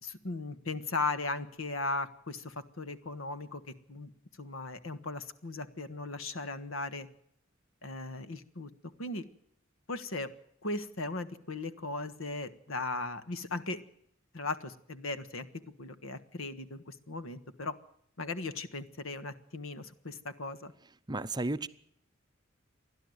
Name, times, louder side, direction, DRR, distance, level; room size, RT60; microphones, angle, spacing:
voice 1, 0.0-3.6 3.9-4.1 4.4-7.1 7.8-8.7 9.0-9.2 9.9-10.3 10.6-13.8 14.3-15.5 15.8-17.8 18.2-20.7, left 3 dB, 80° left, 11 dB, 1.5 m, -37 dB
voice 2, 21.1-21.7, right 2 dB, 20° right, 12 dB, 0.7 m, -33 dB
28.5 x 11.5 x 8.1 m, 0.69 s
head